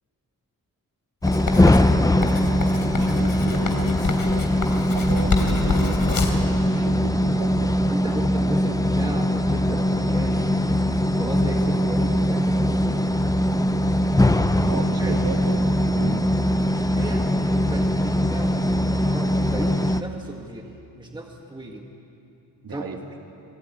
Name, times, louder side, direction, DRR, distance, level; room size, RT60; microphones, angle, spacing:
sound 1, 1.2-20.0, left 1 dB, 10° left, 0.6 m, -21 dB
Writing, 1.3-6.5, left 4 dB, 75° left, 3.2 m, -28 dB
voice 1, 2.1-4.6 4.9-7.7 14.7-15.6 15.9-16.2 22.6-23.0, right 4 dB, 75° right, 3 dB, 2.5 m, -34 dB
voice 2, 7.9-10.5 11.1-13.0 14.6-15.2 16.9-21.9 22.7-23.0, right 1 dB, 15° right, 1 dB, 1.6 m, -35 dB
25.5 x 21.0 x 9.4 m, 2.8 s
wide cardioid pair, 160°, 35 cm